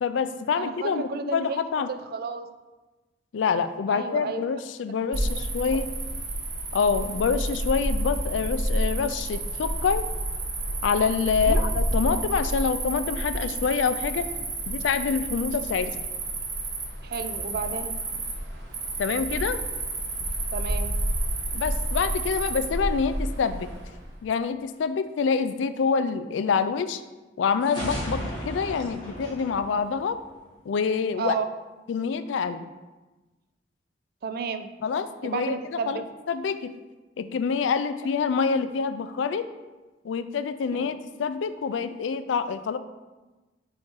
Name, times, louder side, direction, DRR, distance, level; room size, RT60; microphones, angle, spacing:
voice 1, 0.0-1.9 3.3-5.9 6.7-10.0 10.8-14.3 14.7-15.9 19.0-19.6 21.5-23.7 24.2-27.0 27.4-30.2 30.7-31.3 31.9-32.7 34.8-36.7 37.2-39.5 40.0-42.8, left 5 dB, 85° left, 12 dB, 0.4 m, -26 dB
voice 2, 0.6-1.6 1.9-2.5 3.9-4.5 5.1-5.2 11.4-11.7 17.0-18.0 20.5-20.9 31.2-31.4 34.2-34.7 35.2-36.0 40.8-40.9, right 5 dB, 55° right, 9 dB, 0.4 m, -32 dB
Cricket, 5.1-24.0, right 1 dB, 80° right, 1.1 m, -30 dB
sound 1, 27.6-30.5, equal, 25° left, 1.9 m, -35 dB
4.8 x 4.3 x 4.5 m, 1.2 s
head